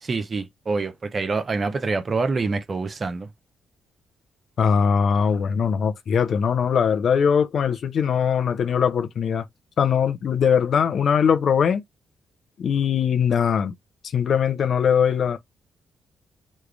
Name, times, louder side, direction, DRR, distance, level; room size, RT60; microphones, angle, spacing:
voice 1, 0.0-3.3, right 4 dB, 45° right, 0.7 m, -26 dB
voice 2, 4.6-9.4 9.8-11.8 12.6-13.7 14.1-15.4, left 7 dB, 65° left, 0.6 m, -21 dB
3.1 x 2.3 x 3.3 m
supercardioid pair, 50°, 0 cm